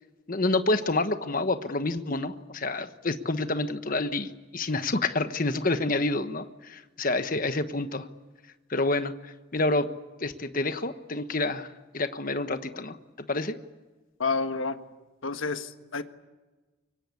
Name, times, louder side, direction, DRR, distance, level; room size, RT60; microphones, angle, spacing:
voice 1, 0.3-8.1 8.7-9.9 10.2-11.7 11.9-13.0 13.3-13.6, left 2 dB, 45° left, 9 dB, 1.2 m, -28 dB
voice 2, 14.2-14.8 15.2-16.0, left 4 dB, 75° left, 9 dB, 1.4 m, -29 dB
24.5 x 24.0 x 8.5 m, 1.2 s
head